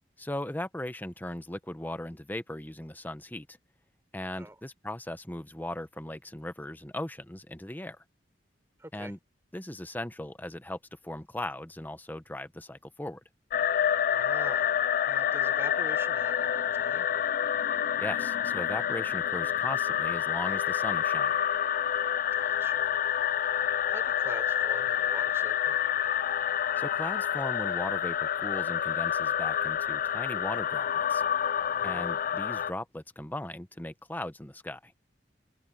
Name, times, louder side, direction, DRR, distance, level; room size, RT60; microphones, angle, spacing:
voice 1, 0.2-3.6 4.1-8.0 8.9-9.2 9.5-13.2 18.0-21.4 26.8-31.2 31.8-34.9, left 1 dB, 10° left, 0.9 m, -38 dB
voice 2, 8.8-9.1 14.1-14.8 15.1-17.1 22.3-22.9 23.9-25.8 31.7-32.1, right 1 dB, 15° right, 4.8 m, -45 dB
sound 1, 13.5-32.7, left 9 dB, 50° left, 0.4 m, -28 dB
head